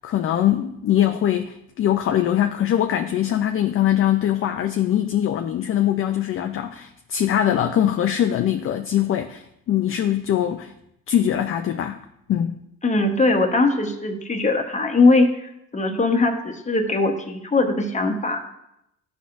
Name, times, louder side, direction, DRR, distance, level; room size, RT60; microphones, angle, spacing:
voice 1, 0.0-10.7 11.1-12.0 12.3-12.6, left 11 dB, 40° left, 7 dB, 0.4 m, -22 dB
voice 2, 12.8-15.3 15.7-18.5, left 3 dB, 20° left, 3 dB, 1.0 m, -20 dB
11.0 x 4.2 x 2.5 m, 0.82 s
supercardioid pair, 75°, 36 cm